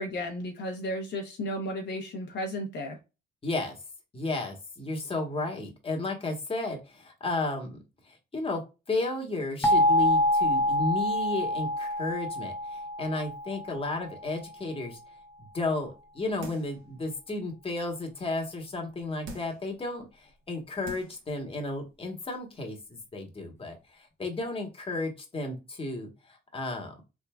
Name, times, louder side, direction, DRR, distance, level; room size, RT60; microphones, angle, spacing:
voice 1, 0.0-3.0, equal, 65° left, 0.9 m, -34 dB
voice 2, 3.4-3.8 4.1-7.8 8.1-8.6 8.9-15.0 15.5-27.0, left 2 dB, 30° left, 1.3 m, -33 dB
sound 1, 9.6-14.3, left 1 dB, 10° left, 0.8 m, -26 dB
sound 2, 16.4-16.8 17.3-17.4 19.2-19.7 20.4-20.5 20.8-21.3 21.6-21.7, right 2 dB, 80° right, 1.4 m, -43 dB
3.7 x 3.5 x 2.3 m
cardioid pair, 90°, 20 cm